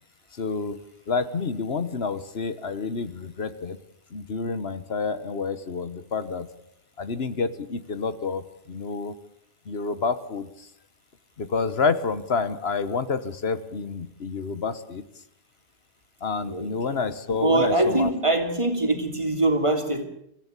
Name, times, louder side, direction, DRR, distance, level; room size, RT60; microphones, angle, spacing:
voice 1, 0.3-0.8 1.1-3.8 4.1-6.5 7.0-9.1 9.7-10.7 11.4-15.0 16.2-18.1, left 4 dB, 75° left, 13 dB, 1.5 m, -28 dB
voice 2, 16.4-17.0 17.4-20.0, right 2 dB, 30° right, 5 dB, 3.0 m, -23 dB
26.0 x 15.5 x 8.3 m, 0.77 s
omnidirectional pair, 1.1 m